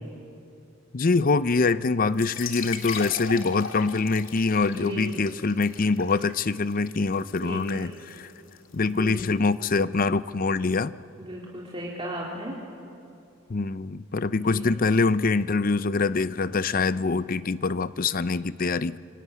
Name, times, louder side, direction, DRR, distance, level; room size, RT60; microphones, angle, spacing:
voice 1, 0.9-8.3 8.7-10.9 13.5-19.0, left 4 dB, 45° left, 15 dB, 0.6 m, -24 dB
sound 1, 2.1-9.7, left 6 dB, 80° left, 2.3 m, -39 dB
voice 2, 4.7-5.2 7.4-8.0 9.0-9.3 11.2-12.5 14.5-14.7, right 1 dB, 25° right, -4 dB, 3.2 m, -35 dB
25.5 x 24.5 x 9.5 m, 2.6 s
head